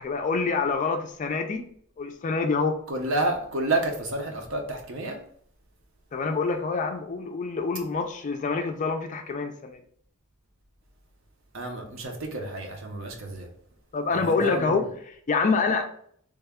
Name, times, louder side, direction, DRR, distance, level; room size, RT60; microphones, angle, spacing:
voice 1, 0.0-1.6 2.0-2.8 6.1-9.8 13.9-15.8, left 4 dB, 35° left, 5 dB, 0.3 m, -26 dB
voice 2, 2.9-5.2 11.5-13.5 14.1-14.9, right 2 dB, 60° right, 2 dB, 0.7 m, -30 dB
3.3 x 2.2 x 3.5 m, 0.62 s
head